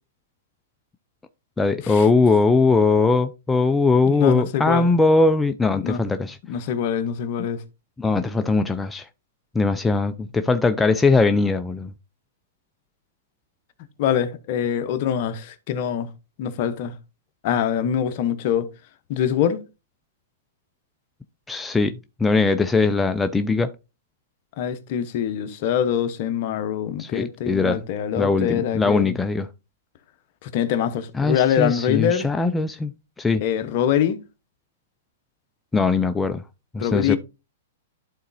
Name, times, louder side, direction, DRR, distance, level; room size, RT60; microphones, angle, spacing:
voice 1, 1.6-6.4 8.0-9.1 9.5-11.9 21.5-21.9 22.2-23.7 27.0-27.8 28.2-29.5 31.2-32.9 33.2-33.4 35.7-36.4 36.7-37.2, left 3 dB, 10° left, 0.4 m, -20 dB
voice 2, 4.1-4.9 5.7-6.0 6.5-7.6 14.0-16.1 16.4-16.9 17.4-18.7 19.1-19.6 24.6-29.2 30.4-32.3 33.4-34.2 36.8-37.2, left 9 dB, 50° left, 0.9 m, -24 dB
12.0 x 4.0 x 2.6 m
hypercardioid pair, 125°, 0 cm